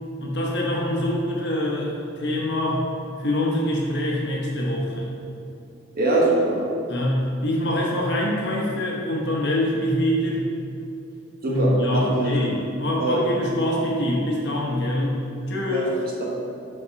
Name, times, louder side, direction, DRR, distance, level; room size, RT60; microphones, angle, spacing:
voice 1, 0.2-2.9 3.2-5.1 6.9-10.5 11.5-15.2 15.5-15.9, left 1 dB, 55° left, -2 dB, 1.0 m, -24 dB
voice 2, 5.9-6.6 11.4-12.5 13.0-13.2 15.7-16.2, right 1 dB, 45° right, -4 dB, 1.1 m, -23 dB
5.7 x 5.1 x 4.0 m, 2.6 s
head